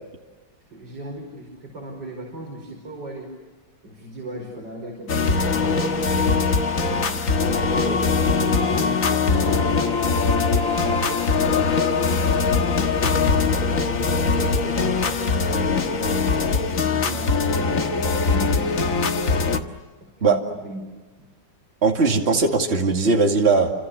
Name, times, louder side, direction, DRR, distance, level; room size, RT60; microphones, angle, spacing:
voice 1, 0.7-3.3 3.8-6.0 6.7-7.3 7.8-8.2 8.6-13.3 13.7-15.9 16.5-19.0 20.0-20.9 21.2-21.3, right 1 dB, 65° right, 0 dB, 5.7 m, -37 dB
sound 1, 5.1-19.6, left 4 dB, 45° left, 1.8 m, -21 dB
voice 2, 21.8-23.7, right 4 dB, 35° right, 2 dB, 2.6 m, -19 dB
30.0 x 27.0 x 7.0 m, 1.3 s
omnidirectional pair, 2.0 m